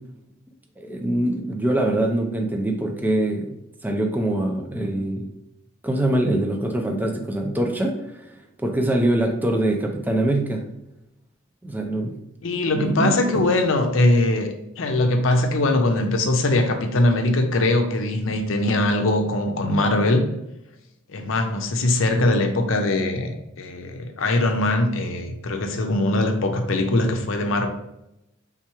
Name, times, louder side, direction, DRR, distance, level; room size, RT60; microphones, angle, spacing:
voice 1, 0.8-3.5 3.8-5.3 5.8-8.0 8.6-10.7 11.6-12.2 12.7-13.4, right 1 dB, 10° right, 2 dB, 0.5 m, -23 dB
voice 2, 12.4-20.3 21.1-27.7, left 2 dB, 70° left, 5 dB, 0.6 m, -21 dB
3.5 x 3.0 x 4.6 m, 0.87 s
head